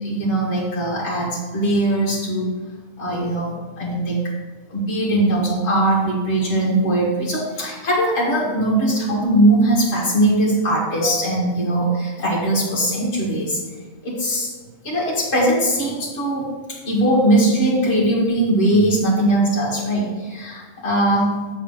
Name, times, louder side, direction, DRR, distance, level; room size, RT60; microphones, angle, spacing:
voice 1, 0.0-2.5 3.0-4.2 4.7-13.6 14.0-14.5 14.8-16.5 16.9-21.4, right 1 dB, 45° left, -5 dB, 1.8 m, -20 dB
7.9 x 3.6 x 6.4 m, 1.3 s
omnidirectional pair, 1.6 m